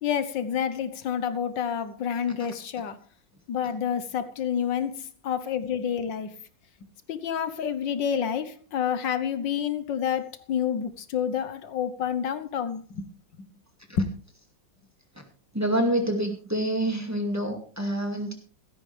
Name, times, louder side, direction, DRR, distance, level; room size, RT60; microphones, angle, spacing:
voice 1, 0.0-3.0 3.5-6.4 7.1-13.1 13.9-14.1, left 8 dB, 75° left, 12 dB, 1.8 m, -28 dB
voice 2, 15.5-18.3, right 1 dB, 10° right, 3 dB, 2.2 m, -27 dB
16.0 x 13.5 x 3.4 m, 0.37 s
omnidirectional pair, 2.0 m